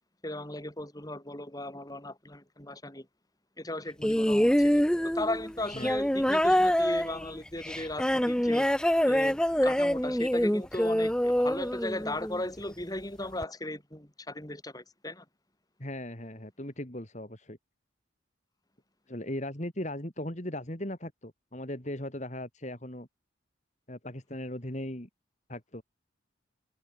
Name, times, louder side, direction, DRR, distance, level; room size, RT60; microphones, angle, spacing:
voice 1, 0.2-3.1 3.6-4.9 5.1-8.7 9.1-9.4 9.6-15.2, left 1 dB, 20° left, 5.5 m, -37 dB
sound 1, 4.0-12.4 13.4-13.5, equal, 5° left, 0.7 m, -25 dB
voice 2, 15.8-17.6 19.1-23.1 23.9-25.1 25.5-25.8, left 1 dB, 35° left, 3.6 m, -38 dB
head